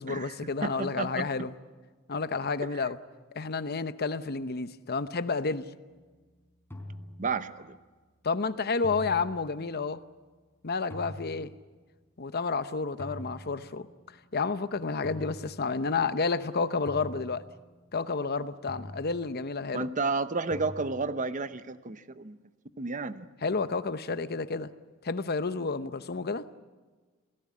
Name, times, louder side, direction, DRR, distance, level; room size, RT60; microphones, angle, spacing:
voice 1, 0.0-1.5 2.1-3.0 3.3-5.7 8.2-10.0 10.6-11.5 12.2-13.9 14.3-17.4 17.9-19.9 23.4-24.7 25.0-26.4, left 4 dB, 50° left, 0.9 m, -30 dB
voice 2, 0.6-1.3 2.7-2.8 7.2-7.8 19.7-22.4 22.8-23.3, right 4 dB, 40° right, 0.9 m, -32 dB
sound 1, 5.9-6.2 6.7-7.6 8.8-9.8 10.9-11.7 13.0-14.2 15.0-16.2 16.9-18.1 18.7-19.6 20.5-21.3, left 1 dB, 10° left, 4.0 m, -45 dB
28.0 x 17.5 x 8.6 m
head